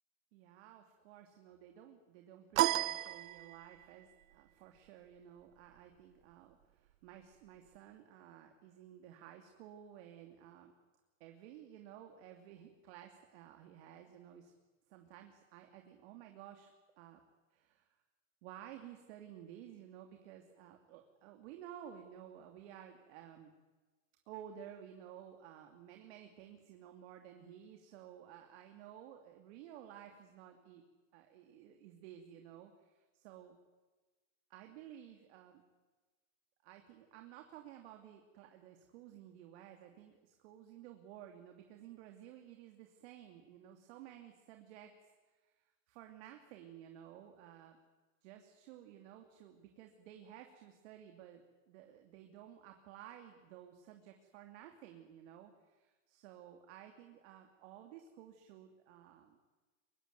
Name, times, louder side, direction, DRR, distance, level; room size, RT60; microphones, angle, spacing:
voice 1, 0.3-10.7 11.2-14.5 14.9-17.2 17.5-18.0 18.4-23.5 24.3-30.8 31.1-33.6 34.5-35.6 36.6-47.8 48.2-59.4, right 10 dB, 55° right, 4 dB, 2.9 m, -54 dB
sound 1, 2.6-3.9, right 15 dB, 80° right, 0.9 m, -33 dB
23.0 x 22.5 x 9.5 m, 1.3 s
supercardioid pair, 140°, 39 cm